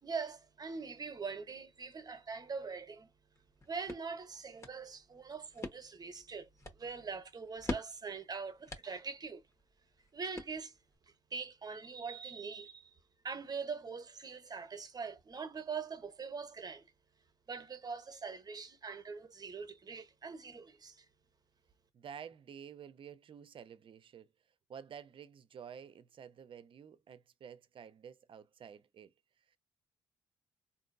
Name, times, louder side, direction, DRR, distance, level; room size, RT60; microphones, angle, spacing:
voice 1, 0.0-3.1 3.7-9.4 10.1-10.7 11.3-12.9 13.2-16.8 17.5-21.0, right 5 dB, 35° right, 1.0 m, -43 dB
sound 1, 3.4-11.0, left 2 dB, 25° left, 1.3 m, -47 dB
voice 2, 21.9-24.3 24.7-29.1, right 7 dB, 50° right, 0.6 m, -51 dB
3.6 x 2.6 x 2.6 m
supercardioid pair, 60°, 11 cm